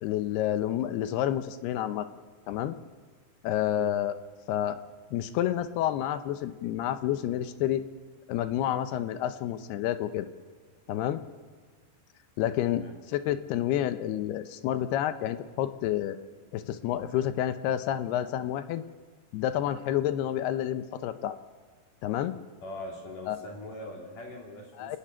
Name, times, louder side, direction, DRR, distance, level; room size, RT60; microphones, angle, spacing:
voice 1, 0.0-2.1 2.5-2.8 3.4-4.1 4.5-4.8 5.1-7.8 8.3-10.3 10.9-11.2 12.4-16.2 16.5-18.8 19.3-21.4 22.0-22.3 23.3-23.4 24.8-25.0, left 11 dB, 75° left, 11 dB, 2.7 m, -29 dB
voice 2, 22.6-25.0, left 1 dB, 55° left, 0 dB, 3.9 m, -42 dB
27.0 x 15.0 x 9.7 m, 1.5 s
omnidirectional pair, 4.9 m